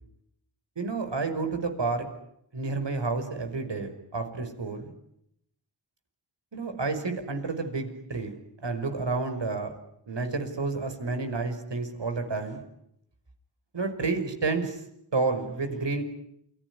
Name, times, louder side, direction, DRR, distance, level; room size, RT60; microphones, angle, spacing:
voice 1, 0.8-2.1 2.5-4.9 6.5-9.8 10.1-12.6 13.7-14.8 15.1-16.0, right 3 dB, 55° right, 7 dB, 5.7 m, -30 dB
28.5 x 20.0 x 9.8 m, 0.76 s
cardioid pair, 55°, 50 cm